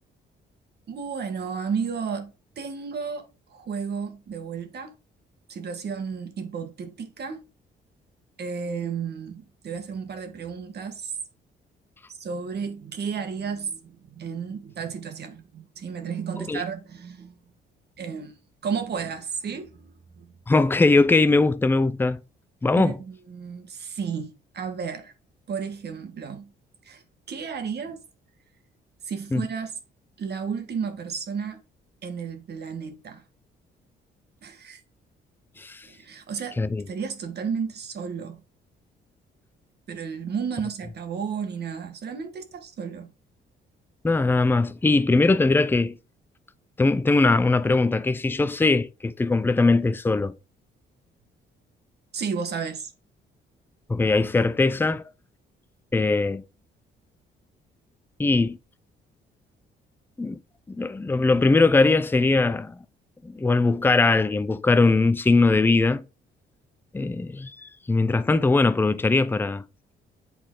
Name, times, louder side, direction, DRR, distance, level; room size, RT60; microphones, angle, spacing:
voice 1, 0.9-4.9 5.5-7.4 8.4-11.1 12.1-17.3 18.0-18.3 18.6-20.3 22.7-25.1 25.5-26.5 26.8-27.0 27.3-28.0 29.0-29.8 30.2-31.6 32.0-33.2 34.4-34.8 35.8-38.4 39.9-43.1 52.1-52.9, right 6 dB, 55° right, 1.5 m, -33 dB
voice 2, 20.5-22.2 22.6-22.9 29.3-29.5 35.6-35.8 36.6-36.8 44.0-45.9 46.8-50.3 53.9-55.0 55.9-56.4 58.2-58.6 60.2-60.4 60.7-62.8 63.2-66.0 66.9-69.6, left 3 dB, 10° left, 0.5 m, -21 dB
8.5 x 4.2 x 3.8 m
cardioid pair, 90°, 20 cm